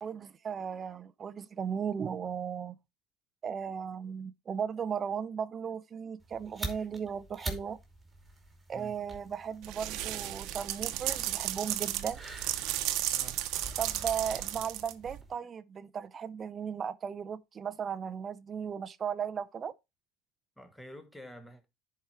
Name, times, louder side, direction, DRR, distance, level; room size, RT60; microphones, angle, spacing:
voice 1, 0.0-2.8 3.4-7.8 8.7-12.2 13.8-19.7, right 7 dB, 30° right, 0.5 m, -36 dB
sound 1, 6.2-15.4, right 2 dB, 10° right, 2.7 m, -46 dB
sound 2, 9.6-15.2, right 14 dB, 65° right, 0.9 m, -34 dB
voice 2, 13.1-13.4 20.6-21.7, equal, 5° left, 1.5 m, -48 dB
10.5 x 4.7 x 4.3 m
supercardioid pair, 120°, 0 cm